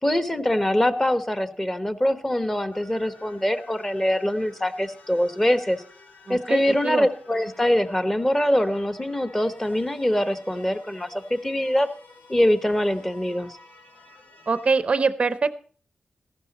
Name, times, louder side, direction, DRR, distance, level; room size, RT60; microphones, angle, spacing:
voice 1, 0.0-5.8 6.3-11.9 12.3-13.6, left 1 dB, 15° left, 10 dB, 1.2 m, -23 dB
sound 1, 2.7-14.8, left 3 dB, 75° left, 2.6 m, -51 dB
voice 2, 6.3-7.1 14.5-15.5, right 4 dB, 45° right, 14 dB, 0.6 m, -23 dB
15.0 x 12.0 x 4.1 m, 0.43 s
wide cardioid pair, 115°, 3 cm